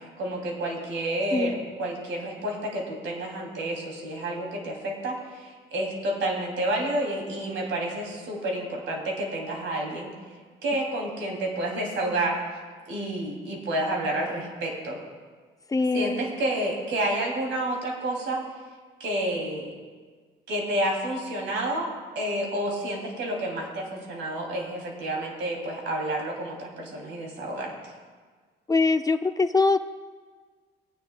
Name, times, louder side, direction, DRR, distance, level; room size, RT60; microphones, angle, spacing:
voice 1, 0.2-10.1 10.6-12.4 12.9-15.0 15.9-18.4 19.0-19.7 20.5-27.7, right 1 dB, 75° right, -1 dB, 2.9 m, -30 dB
voice 2, 15.7-16.2 28.7-29.8, left 3 dB, 15° left, 8 dB, 0.5 m, -23 dB
18.0 x 9.6 x 2.3 m, 1.5 s
cardioid pair, 90°, 20 cm